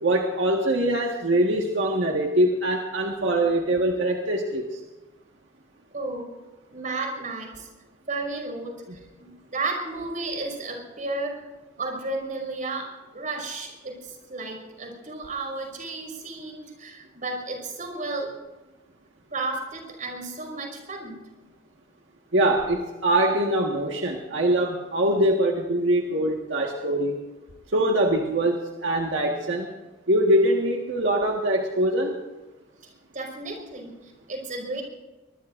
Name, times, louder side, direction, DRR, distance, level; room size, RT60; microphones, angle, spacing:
voice 1, 0.0-4.8 22.3-27.2 27.7-29.7 30.1-32.2, right 1 dB, 85° right, 0 dB, 1.6 m, -23 dB
voice 2, 5.9-6.3 6.7-7.7 8.1-11.5 11.8-18.4 19.3-21.3 33.1-34.8, right 3 dB, 45° right, 2 dB, 5.6 m, -33 dB
24.5 x 20.5 x 2.6 m, 1.2 s
head